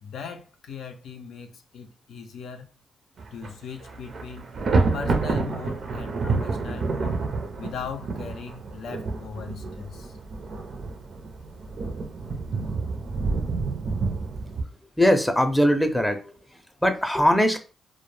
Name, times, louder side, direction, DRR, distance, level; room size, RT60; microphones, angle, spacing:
voice 1, 0.0-2.7 3.3-4.5 4.9-7.2 7.6-10.2, left 6 dB, 80° left, 0.4 m, -39 dB
Thunder, 3.2-3.5 3.8-14.6, right 4 dB, 60° right, 0.5 m, -28 dB
voice 2, 15.0-16.3 16.8-17.6, equal, 5° left, 0.5 m, -20 dB
2.1 x 2.1 x 3.1 m
cardioid pair, 65°, 0 cm